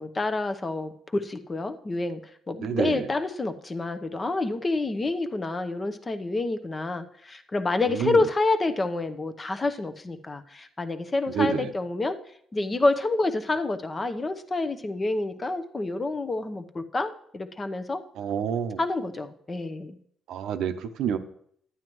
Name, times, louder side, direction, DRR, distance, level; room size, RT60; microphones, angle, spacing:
voice 1, 0.0-2.2 2.5-12.2 12.5-18.0 18.8-20.0, left 2 dB, 30° left, 9 dB, 0.8 m, -28 dB
voice 2, 2.6-3.1 7.9-8.2 11.3-11.7 18.2-18.8 20.3-21.2, right 7 dB, 80° right, 9 dB, 0.7 m, -28 dB
11.0 x 9.2 x 3.1 m, 0.67 s
cardioid pair, 80°, 0 cm